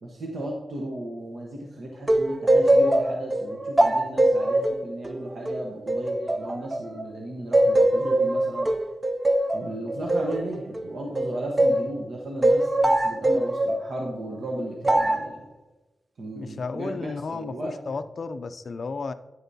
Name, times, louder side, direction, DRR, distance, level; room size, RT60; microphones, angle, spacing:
voice 1, 0.0-8.7 9.5-15.4 16.2-17.7, right 1 dB, 65° right, -1 dB, 1.1 m, -35 dB
sound 1, 2.1-7.1 7.5-11.9 12.4-13.9 14.8-15.3, right 1 dB, 20° right, 0.4 m, -22 dB
voice 2, 16.3-19.1, left 4 dB, 50° left, 11 dB, 0.4 m, -33 dB
9.7 x 8.0 x 2.7 m, 1.1 s
wide cardioid pair, 115°, 0 cm